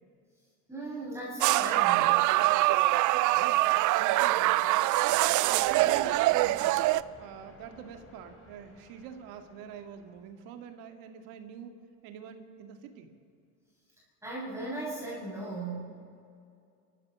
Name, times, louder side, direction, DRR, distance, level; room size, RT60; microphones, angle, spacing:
voice 1, 0.7-2.2 14.2-15.8, right 2 dB, 5° right, -7 dB, 6.7 m, -37 dB
sound 1, 1.4-7.0, right 17 dB, 55° right, 0.5 m, -24 dB
voice 2, 3.3-6.8 7.2-13.1, right 8 dB, 75° right, 6 dB, 2.1 m, -46 dB
Thunder, 5.1-10.5, left 2 dB, 40° left, 3.8 m, -55 dB
29.5 x 14.0 x 6.3 m, 2.4 s
cardioid pair, 125°, 36 cm